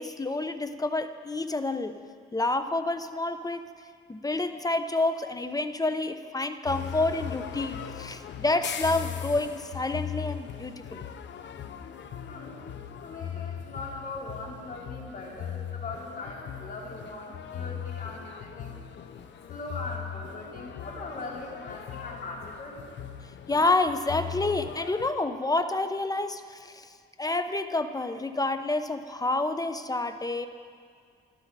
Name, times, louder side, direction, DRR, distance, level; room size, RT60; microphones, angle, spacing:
voice 1, 0.0-2.0 2.3-3.6 4.1-11.0 23.5-26.9 27.2-30.5, left 2 dB, 20° left, 10 dB, 0.8 m, -28 dB
sound 1, 6.7-25.1, left 9 dB, 65° left, 0.9 m, -39 dB
voice 2, 12.3-18.8 19.0-22.9, left 2 dB, 45° left, -2 dB, 3.6 m, -40 dB
23.5 x 13.0 x 4.2 m, 2.1 s
cardioid pair, 90°, 20 cm